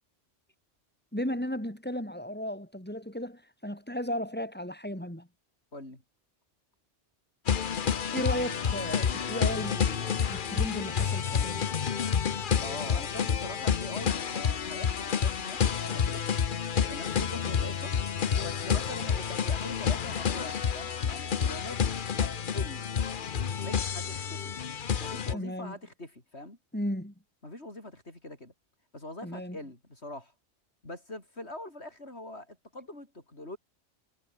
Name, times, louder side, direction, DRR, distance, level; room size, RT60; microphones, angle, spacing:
voice 1, 1.1-5.3 8.1-11.7 25.3-25.8 26.7-27.1 29.2-29.6, equal, 10° left, 7.1 m, -35 dB
voice 2, 5.7-6.0 12.6-16.2 16.7-17.9 18.4-22.9 23.6-24.5 25.0-26.6 27.4-28.5 28.9-30.3 30.8-33.6, left 1 dB, 65° left, 6.2 m, -43 dB
sound 1, 7.5-25.3, left 7 dB, 50° left, 1.0 m, -29 dB
omnidirectional pair, 1.2 m